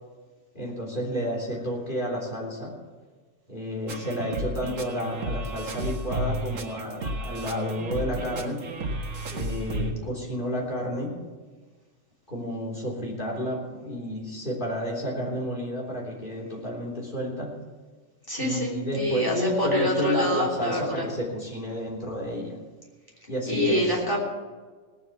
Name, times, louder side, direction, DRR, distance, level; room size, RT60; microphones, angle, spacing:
voice 1, 0.5-2.8 3.5-8.7 9.3-11.2 12.3-17.6 18.4-22.6 23.3-24.0, equal, 40° left, -2 dB, 3.8 m, -31 dB
sound 1, 3.9-9.9, right 1 dB, 75° right, 1.8 m, -32 dB
voice 2, 18.3-21.0 23.5-24.2, equal, 15° left, -2 dB, 3.3 m, -26 dB
18.0 x 7.8 x 7.3 m, 1.4 s
omnidirectional pair, 1.3 m